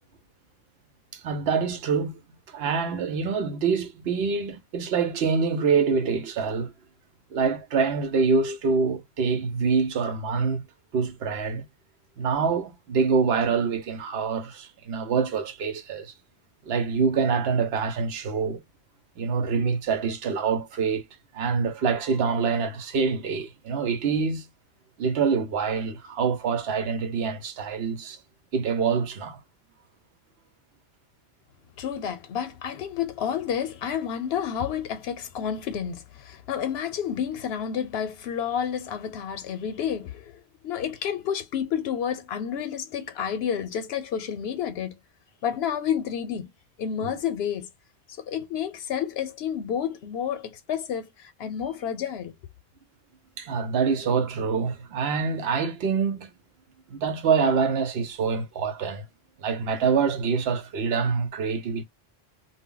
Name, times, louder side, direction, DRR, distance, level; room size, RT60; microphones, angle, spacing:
voice 1, 1.1-2.2 2.5-6.7 7.3-10.6 10.9-11.6 12.2-16.1 16.7-18.6 19.2-21.0 21.3-24.5 25.0-28.2 28.5-29.4 53.4-56.3 56.9-59.0 59.4-61.8, right 5 dB, 85° right, 0.9 m, -25 dB
voice 2, 31.8-45.0 45.4-46.5 46.8-47.7 48.2-52.3, left 8 dB, 80° left, 0.9 m, -30 dB
2.2 x 2.0 x 3.6 m
omnidirectional pair, 1.0 m